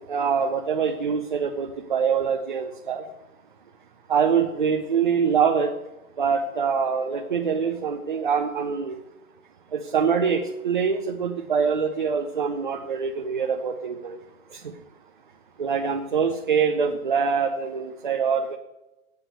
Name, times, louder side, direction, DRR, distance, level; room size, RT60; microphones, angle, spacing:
voice 1, 0.0-3.0 4.1-5.7 6.2-9.0 9.7-14.2 14.5-14.7 15.6-18.6, right 6 dB, 35° right, 4 dB, 0.5 m, -24 dB
8.2 x 8.1 x 6.7 m, 1.0 s
hypercardioid pair, 165°, 44 cm